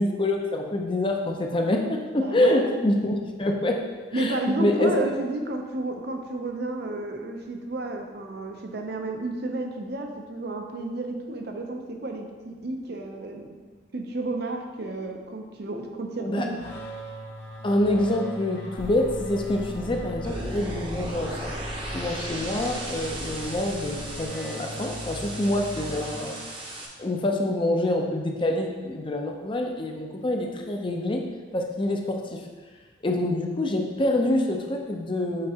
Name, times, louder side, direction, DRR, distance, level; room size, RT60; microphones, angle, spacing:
voice 1, 0.0-3.8 4.1-5.1 16.2-16.5 17.6-21.5 21.9-26.4 27.0-31.2 31.5-32.4 33.0-35.5, left 1 dB, 25° left, 2 dB, 0.6 m, -26 dB
voice 2, 2.2-2.7 4.1-13.5 13.9-16.6, right 2 dB, 60° right, 3 dB, 0.7 m, -31 dB
sound 1, 16.5-26.8, equal, 65° left, 0.8 m, -39 dB
sound 2, 18.7-24.3, equal, 80° left, 1.2 m, -41 dB
sound 3, 20.2-26.9, right 1 dB, 30° right, 0.8 m, -37 dB
6.6 x 5.1 x 2.9 m, 1.4 s
head